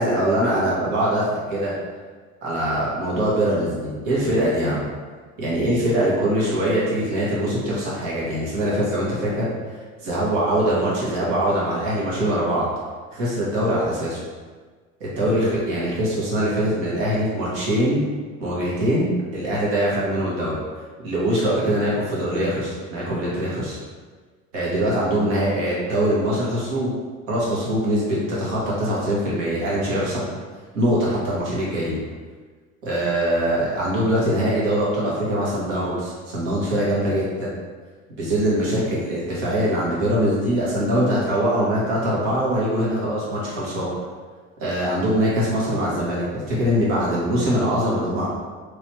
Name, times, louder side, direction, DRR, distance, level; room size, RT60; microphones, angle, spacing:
voice 1, 0.0-1.8 2.4-4.9 5.4-9.5 10.0-12.7 13.1-14.2 15.0-18.0 18.4-20.5 21.0-23.8 24.5-26.9 27.3-30.2 30.7-32.0 32.8-37.5 38.2-43.9 44.6-48.3, equal, 65° right, -6 dB, 1.4 m, -22 dB
3.2 x 3.1 x 3.1 m, 1.5 s
figure-of-eight pair, 70°, 41 cm